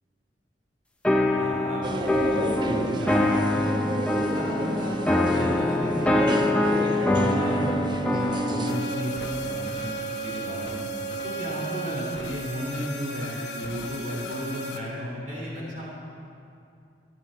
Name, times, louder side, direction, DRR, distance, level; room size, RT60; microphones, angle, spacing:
sound 1, 1.0-8.8, left 1 dB, 5° left, 0.7 m, -24 dB
voice 1, 1.4-3.7 4.1-5.0 5.3-7.7 8.0-10.8 11.2-15.8, equal, 50° right, -5 dB, 3.5 m, -33 dB
sound 2, 1.8-8.7, right 2 dB, 25° right, 0.5 m, -31 dB
sound 3, 8.7-14.8, right 2 dB, 85° left, 1.0 m, -34 dB
15.0 x 9.7 x 4.2 m, 2.5 s
head